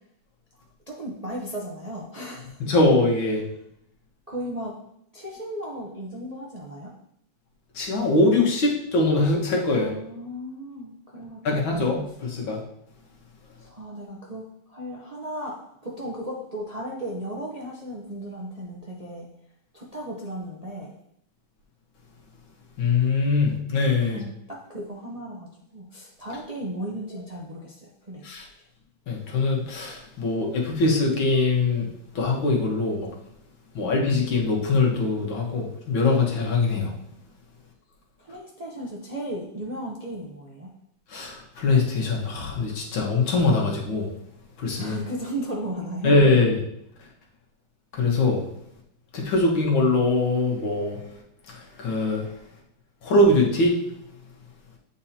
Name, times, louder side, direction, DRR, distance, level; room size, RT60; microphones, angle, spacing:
voice 1, 0.6-2.6 4.3-4.7 5.1-6.9 9.7-11.4 11.7-11.9 13.6-19.3 19.7-20.9 24.1-28.3 33.8-33.9 38.2-40.7 44.8-46.1, right 1 dB, 40° right, -3 dB, 0.5 m, -35 dB
voice 2, 2.6-3.4 7.8-9.9 11.5-12.6 22.8-24.2 28.2-28.4 29.1-31.9 32.2-33.1 33.8-36.9 41.1-44.1 44.6-45.0 46.0-46.6 47.9-48.4 49.1-51.0 51.5-52.2 53.0-53.7, left 2 dB, 90° left, -1 dB, 2.1 m, -22 dB
8.7 x 4.6 x 2.9 m, 0.75 s
omnidirectional pair, 2.1 m